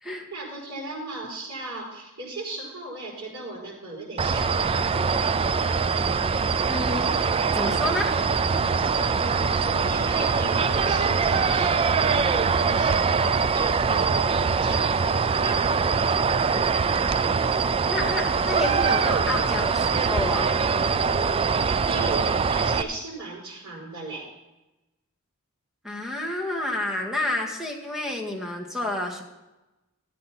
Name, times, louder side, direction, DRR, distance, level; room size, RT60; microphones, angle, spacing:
voice 1, 0.3-5.0 9.0-16.1 21.9-24.3, right 2 dB, 85° right, -4 dB, 4.8 m, -37 dB
sound 1, 4.2-22.8, right 5 dB, 25° right, 0.3 m, -23 dB
voice 2, 6.6-8.1 17.9-20.6 25.8-29.2, left 1 dB, 5° right, 0 dB, 1.8 m, -30 dB
13.5 x 9.1 x 4.3 m, 1.0 s
head